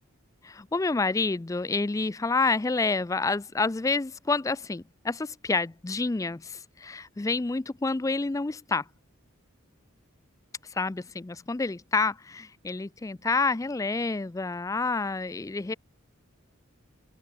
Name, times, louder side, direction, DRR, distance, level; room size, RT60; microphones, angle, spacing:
voice 1, 0.4-8.8 10.6-15.7, left 3 dB, 15° left, 0.3 m, -28 dB
head